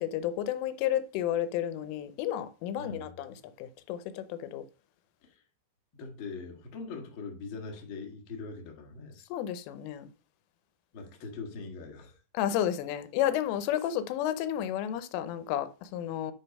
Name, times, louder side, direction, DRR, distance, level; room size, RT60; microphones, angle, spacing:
voice 1, 0.0-4.6 9.3-10.1 12.4-16.3, left 11 dB, 90° left, 3.3 m, -32 dB
voice 2, 2.8-3.1 5.2-5.4 6.0-9.3 10.9-12.2 13.8-13.9, left 4 dB, 55° left, 1.4 m, -42 dB
11.0 x 4.0 x 5.4 m
omnidirectional pair, 5.6 m